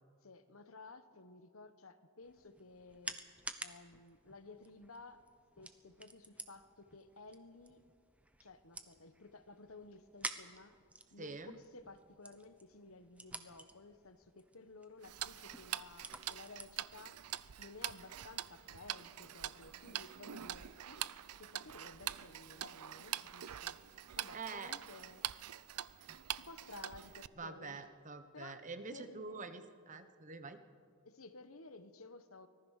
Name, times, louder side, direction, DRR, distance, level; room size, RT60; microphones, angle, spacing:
voice 1, 0.2-3.2 3.6-5.2 5.6-7.8 8.4-10.7 11.1-17.2 17.6-21.1 21.4-23.8 24.2-25.2 26.4-27.8 28.3-28.6 28.9-29.4 31.0-32.5, left 3 dB, 70° left, 10 dB, 1.3 m, -55 dB
sound 1, 2.2-18.6, right 2 dB, 5° right, 0.9 m, -52 dB
voice 2, 11.2-11.6 24.3-24.7 27.4-30.6, right 4 dB, 35° right, 9 dB, 1.1 m, -46 dB
Tick-tock, 15.0-27.3, right 12 dB, 90° right, 0.6 m, -44 dB
24.5 x 19.0 x 6.6 m, 2.1 s
head